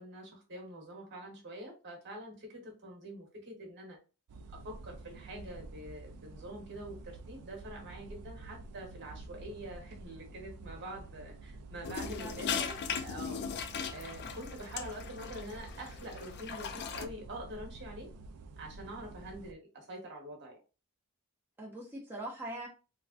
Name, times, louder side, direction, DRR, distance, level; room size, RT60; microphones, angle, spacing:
voice 1, 0.0-4.0 4.6-12.6 13.0-13.4 13.9-18.1 18.6-20.6, right 1 dB, 50° right, 1 dB, 1.2 m, -45 dB
sound 1, 4.3-19.5, right 2 dB, 85° right, 0.4 m, -49 dB
sound 2, 11.8-17.0, left 6 dB, 50° left, 0.4 m, -38 dB
voice 2, 12.0-12.7 13.3-13.5 21.6-22.7, right 1 dB, 10° right, -4 dB, 0.6 m, -43 dB
3.3 x 2.3 x 2.4 m, 0.32 s
head